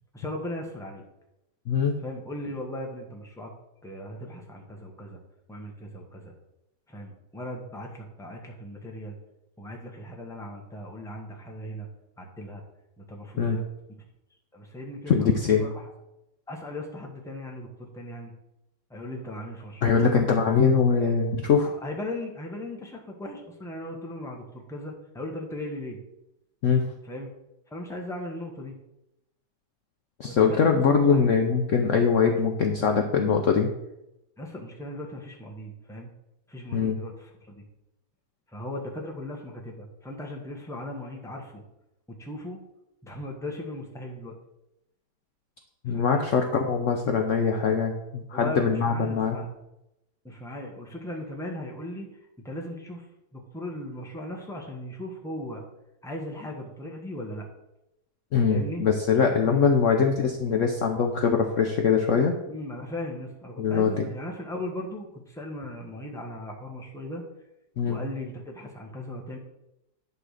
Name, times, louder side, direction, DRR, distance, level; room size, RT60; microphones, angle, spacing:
voice 1, 0.1-1.0 2.0-3.5 3.8-5.2 5.5-6.3 6.9-9.2 9.6-11.9 12.2-12.6 13.0-13.6 14.5-15.9 16.5-18.3 18.9-20.3 20.9-21.1 21.5-26.0 27.0-27.3 27.7-28.8 30.2-31.3 34.4-36.1 36.5-37.6 38.5-41.6 42.2-42.6 43.0-44.3 45.9-46.2 48.3-49.5 50.2-52.1 52.4-53.1 53.3-55.6 56.0-57.5 58.5-58.8 59.3-59.8 62.5-67.2 67.9-69.4, left 1 dB, ahead, 0 dB, 1.2 m, -38 dB
voice 2, 15.1-15.7 19.8-21.7 26.6-26.9 30.2-33.7 36.7-37.0 45.8-49.4 58.3-62.3 63.6-64.1 67.8-68.0, left 5 dB, 55° left, 3 dB, 0.9 m, -22 dB
11.0 x 3.8 x 6.5 m, 0.88 s
omnidirectional pair, 1.9 m